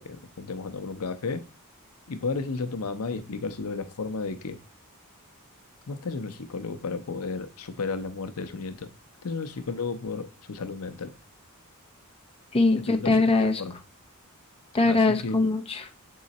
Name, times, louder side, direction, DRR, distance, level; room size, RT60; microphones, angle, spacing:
voice 1, 0.0-1.4 2.1-4.6 5.9-8.9 9.2-11.1 12.9-13.2 13.6-13.8 14.8-15.4, left 4 dB, 75° left, 0.6 m, -33 dB
voice 2, 12.5-13.6 14.7-15.9, left 3 dB, 25° left, 0.7 m, -22 dB
7.4 x 3.8 x 4.1 m
head